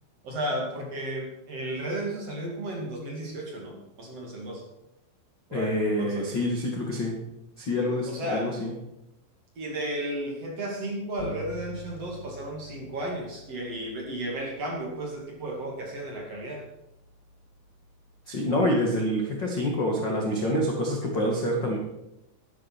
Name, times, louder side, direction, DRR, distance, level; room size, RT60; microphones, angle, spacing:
voice 1, 0.2-4.6 5.5-6.3 8.1-8.5 9.6-16.7, right 1 dB, 40° right, -1 dB, 3.0 m, -34 dB
voice 2, 5.5-7.2 7.6-8.7 18.3-21.8, left 1 dB, 50° left, 0 dB, 1.3 m, -27 dB
Bass guitar, 11.2-20.8, equal, 30° left, 1.0 m, -48 dB
11.5 x 11.5 x 6.0 m, 0.89 s
omnidirectional pair, 5.4 m